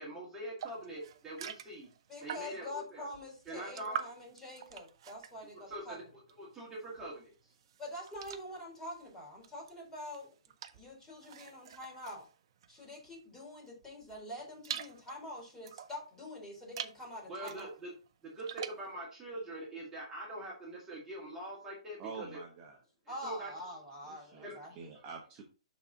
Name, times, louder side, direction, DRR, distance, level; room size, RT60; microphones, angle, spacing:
voice 1, 0.0-1.9 2.2-3.1 3.5-4.0 5.7-7.3 17.3-17.9 18.2-22.4 23.1-23.5 24.4-24.5, right 1 dB, 15° right, -5 dB, 2.2 m, -43 dB
sound 1, 0.6-2.7 3.1-6.6 6.9-13.2 13.7-16.1 16.6-17.0 17.4-18.9, right 9 dB, 55° right, 0.7 m, -46 dB
voice 2, 2.1-6.0 7.8-10.3 10.7-12.2 12.7-17.7 23.1-24.7, left 1 dB, 10° left, -4 dB, 3.9 m, -45 dB
voice 3, 22.0-22.8 24.1-25.4, right 5 dB, 30° right, 0 dB, 1.3 m, -47 dB
11.0 x 4.1 x 2.9 m, 0.34 s
hypercardioid pair, 145°, 3 cm